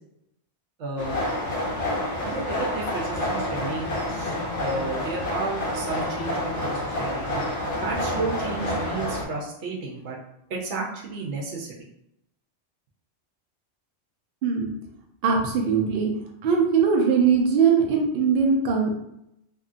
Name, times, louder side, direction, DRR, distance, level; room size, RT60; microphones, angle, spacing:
voice 1, 0.8-1.2 2.2-7.4 7.8-10.2 10.5-11.9, right 3 dB, 85° right, -1 dB, 1.0 m, -32 dB
sound 1, 1.0-9.2, left 1 dB, 80° left, 1.0 m, -28 dB
voice 2, 15.2-16.1 16.4-18.9, right 6 dB, 60° right, 0 dB, 0.7 m, -21 dB
2.7 x 2.5 x 2.5 m, 0.79 s
omnidirectional pair, 1.2 m